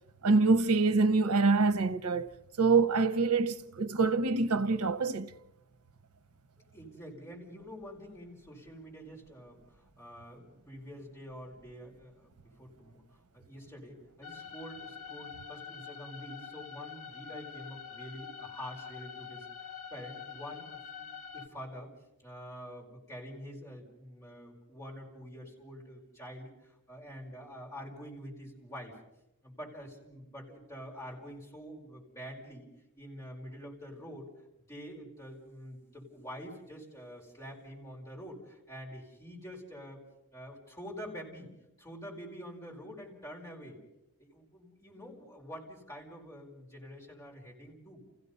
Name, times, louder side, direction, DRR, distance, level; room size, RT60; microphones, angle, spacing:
voice 1, 0.2-2.3 2.6-5.3, right 4 dB, 80° right, 0.8 m, -25 dB
voice 2, 6.7-13.0 13.3-21.1 21.3-21.9 22.2-29.0 29.4-32.7 33.0-34.3 34.7-40.0 40.3-41.5 41.8-43.8 44.2-48.0, equal, 15° left, 5.0 m, -47 dB
sound 1, 14.2-21.5, left 7 dB, 70° left, 1.3 m, -45 dB
29.5 x 16.0 x 5.5 m
head